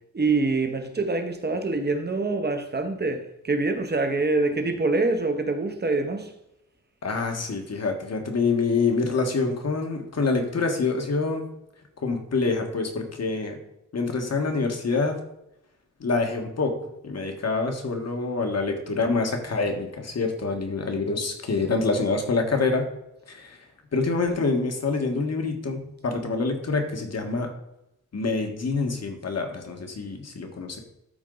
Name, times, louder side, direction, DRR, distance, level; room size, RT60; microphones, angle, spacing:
voice 1, 0.1-6.3, right 3 dB, 35° right, 1.1 m, -25 dB
voice 2, 7.0-11.4 12.0-13.6 13.9-15.2 16.0-16.7 17.0-22.9 23.3-23.6 23.9-27.5 28.1-30.8, left 3 dB, 60° left, 1.5 m, -26 dB
12.5 x 4.5 x 3.9 m
wide cardioid pair, 150°, 30 cm